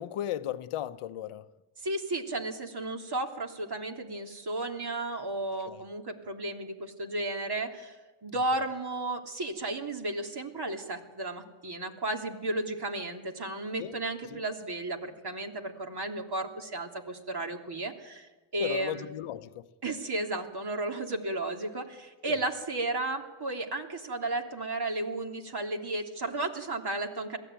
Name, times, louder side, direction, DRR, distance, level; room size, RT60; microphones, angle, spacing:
voice 1, 0.0-1.5 5.6-5.8 13.8-14.0 14.2-14.4 18.6-19.7 22.3-22.4, left 12 dB, 85° left, 1.0 m, -36 dB
voice 2, 1.8-8.0 8.2-19.0 19.8-27.4, right 2 dB, 50° right, 3.3 m, -34 dB
22.5 x 15.5 x 9.1 m
cardioid pair, 60°, 49 cm